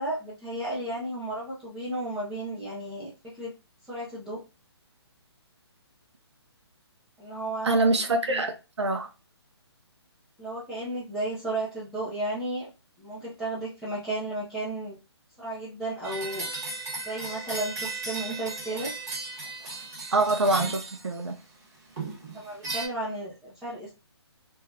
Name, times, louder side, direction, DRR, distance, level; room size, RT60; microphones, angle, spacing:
voice 1, 0.0-3.5 3.9-4.4 7.2-7.8 8.3-8.4 10.4-12.7 13.0-15.0 15.4-16.5 17.1-18.9 22.3-23.9, right 1 dB, 5° right, -9 dB, 0.3 m, -33 dB
voice 2, 7.6-9.1 20.1-21.3, right 2 dB, 80° right, 5 dB, 0.5 m, -25 dB
sound 1, 16.0-21.4 22.0-22.9, right 3 dB, 40° right, 1.2 m, -36 dB
2.7 x 2.3 x 2.4 m, 0.30 s
figure-of-eight pair, 140°, 14 cm